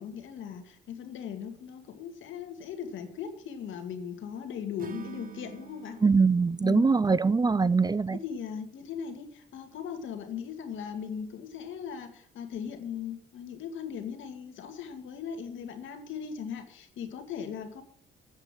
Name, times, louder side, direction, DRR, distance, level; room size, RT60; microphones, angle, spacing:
voice 1, 0.0-6.0 6.6-7.0 7.5-7.7 8.1-17.8, left 7 dB, 75° left, 2.3 m, -38 dB
Acoustic guitar / Strum, 4.8-8.1, right 9 dB, 45° right, 1.5 m, -47 dB
voice 2, 6.0-8.2, right 4 dB, 20° right, 0.5 m, -23 dB
8.8 x 8.0 x 9.1 m
cardioid pair, 90°, 20 cm